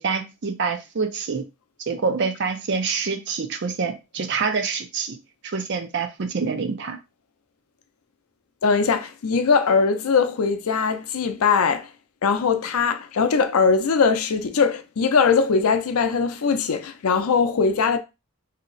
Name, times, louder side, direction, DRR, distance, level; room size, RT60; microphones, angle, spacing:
voice 1, 0.0-1.5 1.8-5.2 5.4-7.0, right 5 dB, 50° right, 0.5 m, -26 dB
voice 2, 8.6-11.9 12.2-18.0, left 5 dB, 85° left, 0.5 m, -21 dB
2.8 x 2.0 x 3.8 m
head